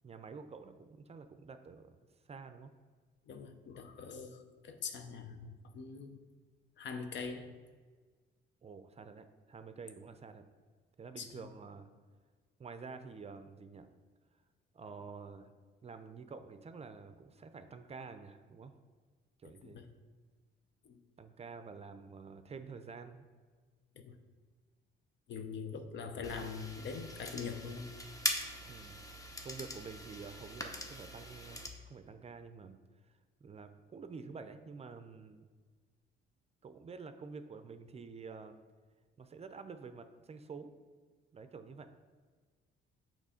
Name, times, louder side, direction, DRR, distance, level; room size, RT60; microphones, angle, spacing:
voice 1, 0.0-1.9 2.2-2.7 8.6-10.4 11.0-11.9 12.6-13.9 14.7-15.5 15.8-18.7 19.4-19.8 21.2-23.3 28.6-29.0 29.4-32.8 33.0-33.1 33.4-35.4 36.6-38.6 39.2-40.7 41.3-41.9, right 5 dB, 30° right, 9 dB, 0.4 m, -49 dB
voice 2, 3.3-6.2 6.8-7.5 11.2-11.3 19.4-19.8 20.8-21.0 24.0-24.2 25.3-27.9, left 5 dB, 65° left, 7 dB, 0.7 m, -43 dB
sound 1, 26.2-31.7, left 1 dB, 15° left, 0.7 m, -42 dB
6.6 x 3.1 x 5.0 m, 1.5 s
cardioid pair, 90°, 20 cm